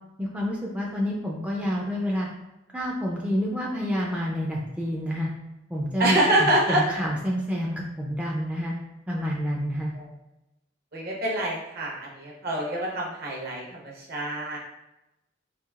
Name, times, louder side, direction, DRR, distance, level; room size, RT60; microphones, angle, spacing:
voice 1, 0.2-2.3 2.7-5.3 5.7-8.8 9.1-10.0, equal, 5° right, -3 dB, 0.4 m, -28 dB
voice 2, 6.0-6.8 9.9-10.0 10.9-14.6, right 1 dB, 55° right, -3 dB, 1.0 m, -26 dB
4.6 x 2.7 x 2.4 m, 0.95 s
head